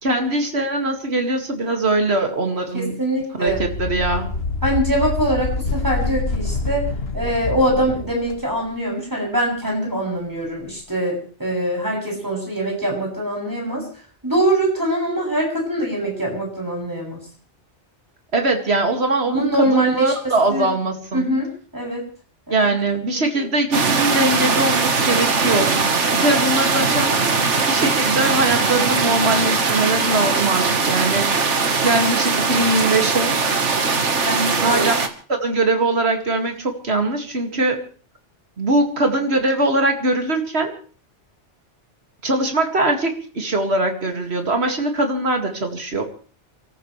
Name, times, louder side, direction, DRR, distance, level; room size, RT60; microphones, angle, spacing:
voice 1, 0.0-3.0 3.4-4.3 18.3-21.3 22.5-25.8 26.1-27.2 27.7-31.3 31.8-33.4 34.6-35.0 35.3-37.8 38.6-40.7 42.2-46.0, right 2 dB, 65° right, 4 dB, 2.5 m, -21 dB
voice 2, 2.7-3.6 4.6-6.8 7.1-13.8 14.2-17.2 19.3-20.1 20.5-20.7 21.1-22.1 22.5-22.7 23.0-23.4 34.2-34.9, right 1 dB, 15° right, -2 dB, 7.1 m, -23 dB
sound 1, 3.5-8.4, left 3 dB, 60° left, 1.5 m, -26 dB
sound 2, 23.7-35.1, right 4 dB, 80° right, 1.8 m, -20 dB
29.5 x 13.5 x 3.3 m, 0.40 s
omnidirectional pair, 1.2 m